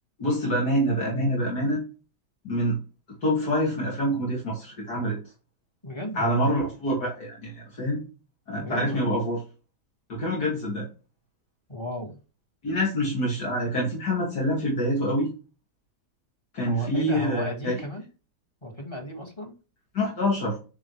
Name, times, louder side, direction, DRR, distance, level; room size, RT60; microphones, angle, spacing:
voice 1, 0.2-1.8 2.4-2.8 3.2-5.2 6.1-8.0 8.5-9.4 10.1-10.8 12.6-15.3 16.5-17.7 19.9-20.6, equal, 70° left, -4 dB, 3.2 m, -26 dB
voice 2, 5.8-6.5 8.6-9.1 11.7-12.2 16.7-18.0 18.6-19.5, left 1 dB, 15° left, 2 dB, 1.9 m, -35 dB
9.8 x 5.0 x 3.3 m, 0.33 s
omnidirectional pair, 1.8 m